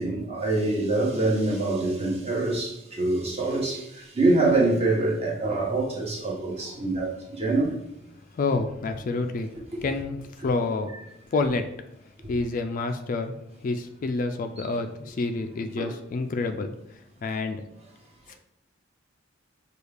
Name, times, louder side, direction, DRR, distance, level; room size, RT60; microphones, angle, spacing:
voice 1, 0.0-7.7 15.8-15.9, right 2 dB, 30° right, 1.0 m, -25 dB
voice 2, 8.3-10.9 11.3-11.7 12.3-17.6 18.3-18.4, left 3 dB, 40° left, 0.3 m, -29 dB
6.3 x 2.3 x 3.3 m
head